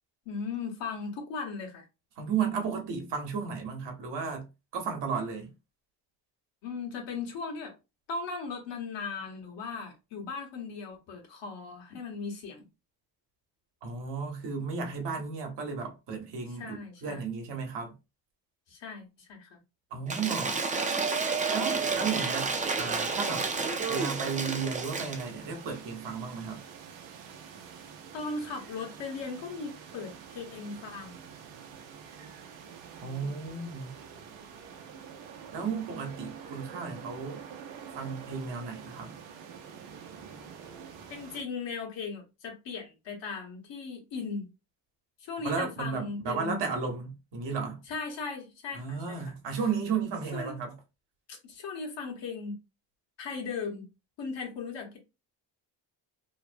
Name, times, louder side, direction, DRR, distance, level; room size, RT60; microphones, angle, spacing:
voice 1, 0.2-1.8 6.6-7.7 8.1-12.6 16.5-17.2 18.7-19.6 28.1-31.3 33.2-33.3 41.1-44.5 45.2-46.6 47.9-49.2 50.3-50.6 51.4-52.6 53.2-53.9 54.2-55.0, left 4 dB, 75° left, 1.1 m, -38 dB
voice 2, 2.2-4.5 4.7-5.5 13.8-17.9 19.9-20.6 21.5-22.5 22.8-23.5 23.9-26.6 33.0-33.9 35.5-37.4 37.9-39.2 45.4-47.8 48.7-50.7, right 5 dB, 65° right, 1.0 m, -34 dB
Cheering / Applause / Crowd, 20.1-25.3, right 4 dB, 20° right, 0.4 m, -30 dB
sound 1, 21.8-41.4, right 7 dB, 85° right, 0.6 m, -47 dB
2.8 x 2.1 x 2.5 m
cardioid pair, 100°, 44 cm